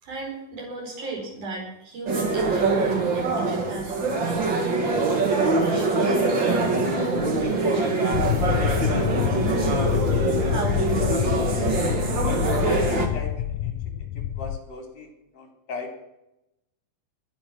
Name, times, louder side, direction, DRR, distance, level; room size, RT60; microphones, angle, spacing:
voice 1, 0.0-4.5 4.8-6.2 6.4-8.1 8.9-9.4 10.4-11.7, right 2 dB, 85° right, 0 dB, 6.3 m, -35 dB
sound 1, 2.1-13.1, right 3 dB, 40° right, 2.6 m, -24 dB
sound 2, 6.3-12.8, equal, 20° left, 0.7 m, -35 dB
sound 3, 8.1-14.6, left 11 dB, 90° left, 2.3 m, -26 dB
voice 2, 12.6-14.1 14.4-16.0, left 4 dB, 60° left, 3 dB, 4.6 m, -39 dB
21.0 x 9.6 x 6.3 m, 0.88 s
omnidirectional pair, 3.5 m